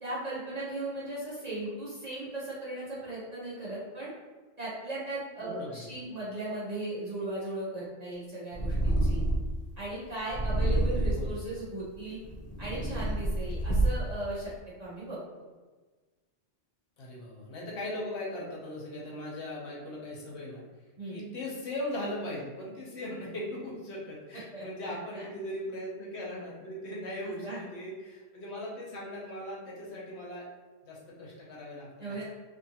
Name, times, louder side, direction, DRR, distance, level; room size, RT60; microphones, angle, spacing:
voice 1, 0.0-4.1 4.6-9.2 9.8-12.2 12.6-15.2 21.0-21.2 24.5-25.2 27.2-27.7 32.0-32.2, right 1 dB, 40° right, -8 dB, 0.6 m, -37 dB
voice 2, 5.4-5.9 11.1-11.4 17.0-20.6 21.1-30.5 30.8-32.2, left 1 dB, 65° left, -4 dB, 1.0 m, -39 dB
Purr, 8.5-9.6 10.3-11.4 12.1-14.2, right 1 dB, 90° left, 0.3 m, -28 dB
2.6 x 2.4 x 2.8 m, 1.3 s
omnidirectional pair, 1.3 m